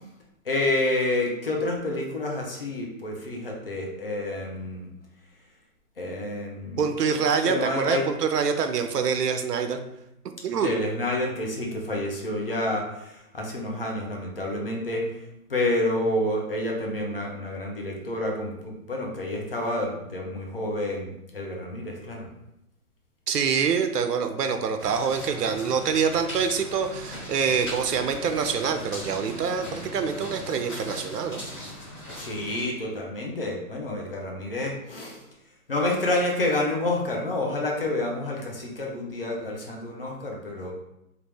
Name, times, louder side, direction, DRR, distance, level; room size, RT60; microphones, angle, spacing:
voice 1, 0.5-4.9 6.0-7.2 7.4-8.0 10.6-15.0 15.5-22.3 32.2-35.2 35.7-40.7, left 1 dB, 40° left, 0 dB, 0.5 m, -29 dB
voice 2, 6.8-9.8 10.4-10.7 23.3-31.4, right 6 dB, 85° right, 7 dB, 0.6 m, -25 dB
sound 1, 24.8-32.6, equal, 15° left, 1.3 m, -39 dB
3.2 x 2.4 x 3.2 m, 0.85 s
hypercardioid pair, 160°, 46 cm